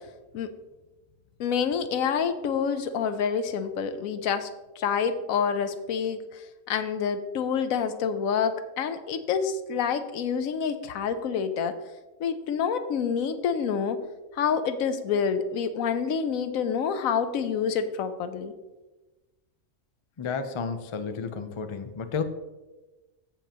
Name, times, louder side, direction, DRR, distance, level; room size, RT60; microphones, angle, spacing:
voice 1, 1.4-4.5 4.8-6.4 6.7-11.7 12.2-14.0 14.3-18.5, left 6 dB, 85° left, 10 dB, 1.1 m, -27 dB
voice 2, 20.2-22.2, left 5 dB, 45° left, 8 dB, 0.3 m, -32 dB
14.5 x 5.4 x 2.9 m, 1.1 s
omnidirectional pair, 1.4 m